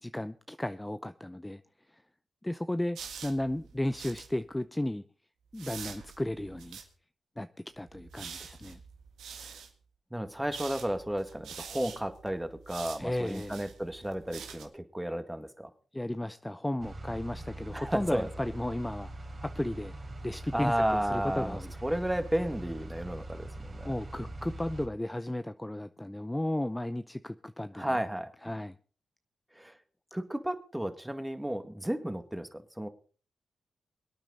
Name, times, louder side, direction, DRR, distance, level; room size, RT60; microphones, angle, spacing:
voice 1, 0.0-1.6 1.9-2.0 2.4-5.0 5.5-6.8 7.4-7.5 7.8-8.8 13.0-13.6 15.9-19.1 19.4-19.9 20.2-21.7 23.8-28.0 28.4-28.8, left 1 dB, 15° left, 12 dB, 0.6 m, -34 dB
sound 1, 2.9-4.3 5.5-6.9 7.8-9.7 10.4-14.6, right 7 dB, 85° right, 1.8 m, -46 dB
voice 2, 10.1-15.7 17.7-18.3 20.5-23.9 27.7-28.3 29.6-29.7 30.1-32.9, right 1 dB, 10° right, 9 dB, 2.0 m, -33 dB
sound 2, 16.8-24.9, right 1 dB, 55° right, 4.2 m, -42 dB
24.5 x 8.9 x 4.1 m, 0.40 s
supercardioid pair, 45°, 0 cm